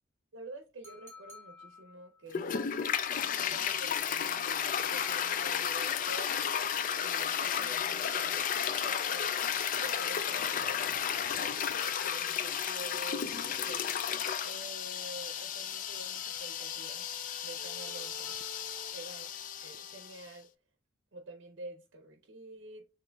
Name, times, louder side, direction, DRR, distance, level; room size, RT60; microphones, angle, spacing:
voice 1, 0.3-2.7 3.3-13.9 14.4-17.1 17.4-18.4 18.9-19.2 19.6-20.5 21.1-22.9, right 2 dB, 70° right, 0.6 m, -48 dB
sound 1, 0.8-2.3 4.8-5.9 8.0-8.9 9.9-11.0 11.8-12.8 13.7-14.7 15.7-16.6 17.8-18.9, left 4 dB, 15° left, 0.7 m, -54 dB
Toilet flush, 2.3-20.2, left 8 dB, 45° left, 0.3 m, -33 dB
sound 2, 16.3-20.2, right 4 dB, 35° right, 1.0 m, -54 dB
6.5 x 3.0 x 2.2 m
head